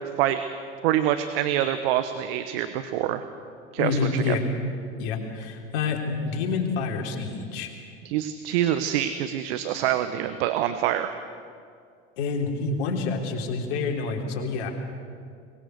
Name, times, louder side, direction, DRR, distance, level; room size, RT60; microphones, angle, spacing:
voice 1, 0.8-3.2 3.7-4.4 8.0-11.1, right 11 dB, 65° right, 10 dB, 1.1 m, -25 dB
voice 2, 3.8-4.4 5.0-7.7 12.2-14.7, left 4 dB, 60° left, 2 dB, 3.4 m, -28 dB
23.0 x 20.5 x 6.6 m, 2.3 s
hypercardioid pair, 80°, 33 cm